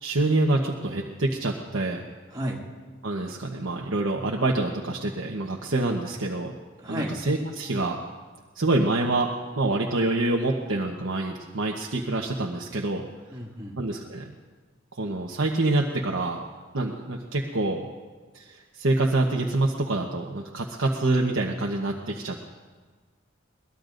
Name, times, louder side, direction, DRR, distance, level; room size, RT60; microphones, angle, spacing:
voice 1, 0.0-2.1 3.0-6.5 6.9-8.0 8.5-9.3 9.6-13.0 13.8-14.3 14.9-16.4 16.7-17.8 18.3-22.4, right 2 dB, 75° right, -1 dB, 1.1 m, -26 dB
voice 2, 2.3-2.6 6.8-7.2 13.3-13.8, equal, 20° right, -3 dB, 2.4 m, -32 dB
22.5 x 19.5 x 2.6 m, 1.4 s
head